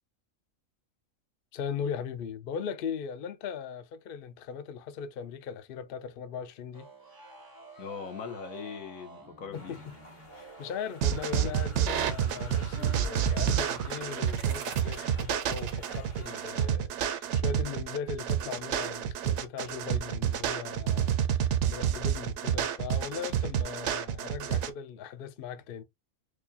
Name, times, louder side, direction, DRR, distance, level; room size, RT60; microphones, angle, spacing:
voice 1, 1.5-6.9 9.5-9.8 10.6-25.8, left 7 dB, 60° left, 0.6 m, -39 dB
sound 1, 6.7-13.1, right 2 dB, 30° right, 0.4 m, -50 dB
voice 2, 7.8-9.8, left 6 dB, 80° left, 1.3 m, -40 dB
sound 2, 9.5-16.7, left 1 dB, 45° left, 1.4 m, -49 dB
sound 3, 11.0-24.7, right 9 dB, 70° right, 0.8 m, -29 dB
4.8 x 2.3 x 2.6 m
omnidirectional pair, 1.4 m